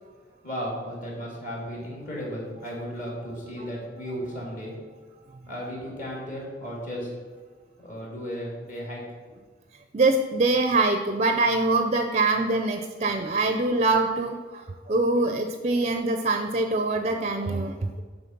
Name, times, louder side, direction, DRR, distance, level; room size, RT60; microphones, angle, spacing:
voice 1, 0.4-4.7 5.5-7.1 7.8-9.0, equal, 45° left, -3 dB, 2.0 m, -35 dB
voice 2, 9.9-17.9, right 2 dB, 35° right, 5 dB, 0.4 m, -24 dB
9.1 x 3.9 x 5.8 m, 1.4 s
head